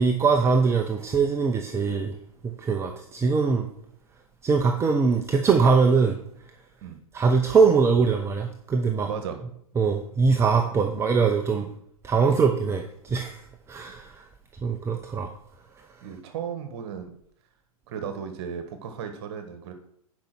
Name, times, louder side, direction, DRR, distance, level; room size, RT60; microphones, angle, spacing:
voice 1, 0.0-2.1 2.4-3.7 4.4-6.2 7.1-9.1 9.8-11.7 12.0-14.2 14.6-15.3, right 5 dB, 15° right, 4 dB, 0.7 m, -22 dB
voice 2, 9.0-9.4 11.6-11.7 16.0-17.1 17.9-19.7, right 7 dB, 45° right, 7 dB, 1.5 m, -35 dB
10.5 x 5.4 x 6.0 m, 0.69 s
figure-of-eight pair, 110°, 19 cm